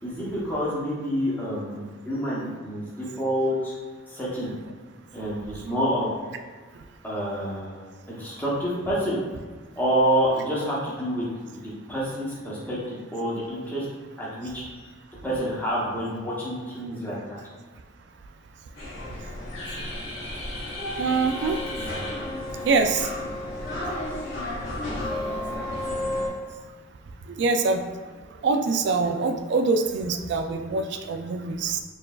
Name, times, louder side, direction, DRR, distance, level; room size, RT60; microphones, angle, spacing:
voice 1, 0.0-3.7 4.1-4.5 5.1-6.1 7.0-9.2 9.8-13.9 14.2-14.9 15.2-17.4, equal, 10° left, -7 dB, 0.9 m, -28 dB
sound 1, 18.7-26.3, left 1 dB, 80° left, 1.3 m, -32 dB
voice 2, 21.0-21.6 22.6-23.1 27.4-27.9 28.4-31.8, right 4 dB, 60° right, 7 dB, 0.3 m, -24 dB
4.5 x 3.3 x 2.4 m, 1.4 s
head